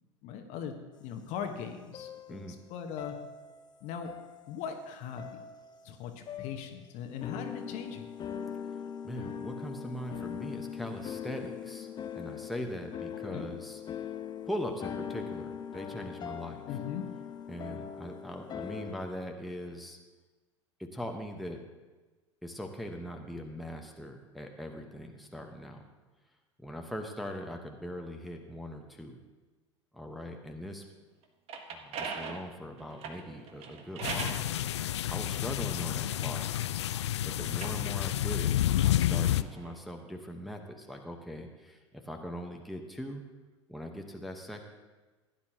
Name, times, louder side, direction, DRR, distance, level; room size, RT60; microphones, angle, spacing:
voice 1, 0.2-0.7 1.0-2.4 2.7-3.2 3.8-4.1 4.5-5.4 5.8-8.1 13.3-13.5 16.7-17.0 35.8-35.9, left 7 dB, 50° left, 5 dB, 1.3 m, -39 dB
sound 1, 1.9-2.6 3.0-3.7 4.0-4.8 5.2-5.9 6.3-6.7 7.2-19.0, left 8 dB, 30° left, 0.8 m, -41 dB
voice 2, 8.7-11.9 12.1-13.8 14.4-16.6 17.5-20.0 20.8-21.6 22.4-25.8 26.6-29.2 29.9-30.8 31.7-34.4 35.1-36.6 37.2-43.3 43.7-44.6, equal, ahead, 2 dB, 1.2 m, -41 dB
sound 2, 31.2-34.5 35.2-36.9 37.4-39.7, right 5 dB, 40° right, 1.4 m, -42 dB
sound 3, 34.0-39.4, left 12 dB, 70° left, 0.4 m, -30 dB
16.0 x 10.5 x 3.0 m, 1.2 s
figure-of-eight pair, 75°, 15 cm